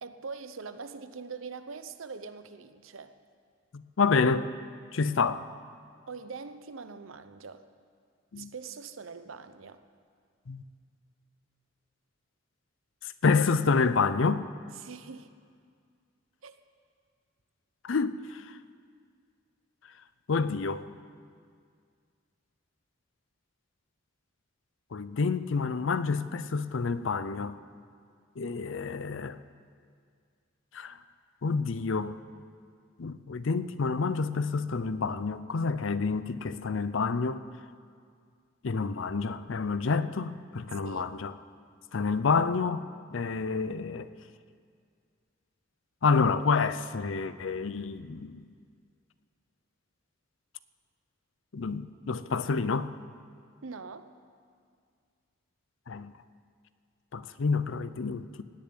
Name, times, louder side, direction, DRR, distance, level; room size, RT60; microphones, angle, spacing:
voice 1, 0.0-3.1 6.1-7.6 8.4-9.8 14.7-15.3 16.4-16.6 40.7-41.2 53.6-54.1, right 5 dB, 85° right, 11 dB, 0.7 m, -43 dB
voice 2, 3.7-4.5 4.9-5.4 8.3-8.5 10.5-10.6 13.2-14.4 17.8-18.4 20.3-20.9 24.9-27.5 28.4-29.4 30.7-30.9 31.4-32.2 33.0-37.4 38.6-41.3 41.9-42.9 43.1-44.1 46.0-48.4 51.5-52.9 55.9-56.1 57.1-58.4, left 4 dB, 75° left, 14 dB, 0.5 m, -28 dB
17.5 x 6.9 x 9.7 m, 2.1 s
head